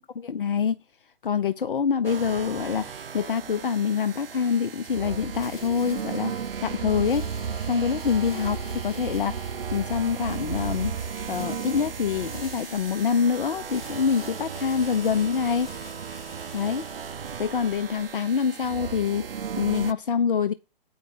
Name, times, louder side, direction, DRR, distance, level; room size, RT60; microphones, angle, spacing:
voice 1, 0.1-0.7 1.2-7.3 7.7-15.7 16.5-16.8 17.4-20.5, left 6 dB, 65° left, 0.6 m, -26 dB
sound 1, 2.0-19.9, right 7 dB, 75° right, 0.6 m, -35 dB
sound 2, 5.1-18.3, left 2 dB, 20° left, 4.3 m, -48 dB
8.7 x 5.3 x 6.3 m
figure-of-eight pair, 135°, 29 cm